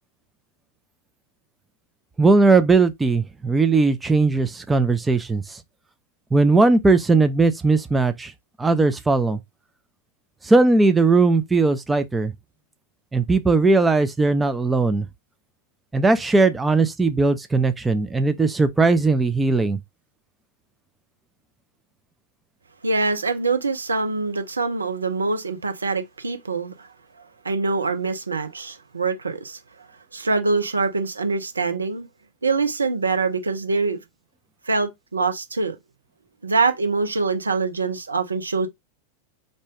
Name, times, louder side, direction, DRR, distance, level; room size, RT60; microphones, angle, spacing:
voice 1, 2.2-5.6 6.3-8.3 8.6-9.4 10.4-12.3 13.1-15.1 15.9-19.8, right 3 dB, 10° right, 0.3 m, -18 dB
voice 2, 22.8-26.9 27.4-29.6 30.1-32.1 32.4-34.0 34.7-35.8 36.4-38.7, right 3 dB, 75° right, 0.5 m, -24 dB
2.6 x 2.2 x 3.3 m
figure-of-eight pair, 90°, 0 cm